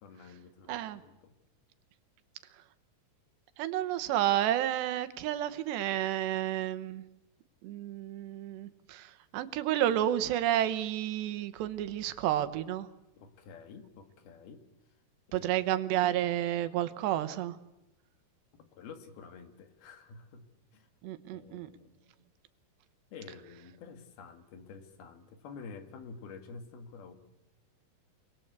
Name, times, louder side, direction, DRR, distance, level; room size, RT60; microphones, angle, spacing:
voice 1, 0.0-1.3 13.2-14.6 15.4-15.5 18.6-20.5 20.7-20.9 21.3-22.0 23.1-27.1, left 5 dB, 70° left, 8 dB, 3.6 m, -49 dB
voice 2, 0.7-1.0 2.5-2.6 3.6-7.1 7.6-12.9 15.3-17.6 21.0-21.7, right 12 dB, 85° right, 12 dB, 3.3 m, -31 dB
28.5 x 20.0 x 8.2 m, 0.93 s
omnidirectional pair, 4.8 m